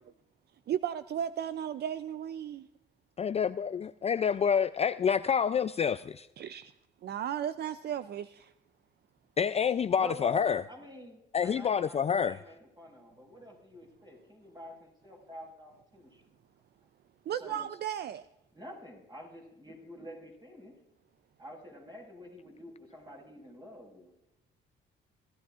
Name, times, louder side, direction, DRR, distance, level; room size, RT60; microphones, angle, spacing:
voice 1, 0.7-2.7 6.4-6.7 7.0-8.5 17.3-18.3, right 10 dB, 55° right, 0.5 m, -35 dB
voice 2, 3.2-6.3 9.4-10.6 11.3-12.4, left 7 dB, 30° left, 0.4 m, -28 dB
voice 3, 10.0-16.2 17.4-17.7 18.5-20.7 21.4-24.1, left 1 dB, 20° right, 5.1 m, -47 dB
18.5 x 13.5 x 2.5 m
cardioid pair, 90°, 20 cm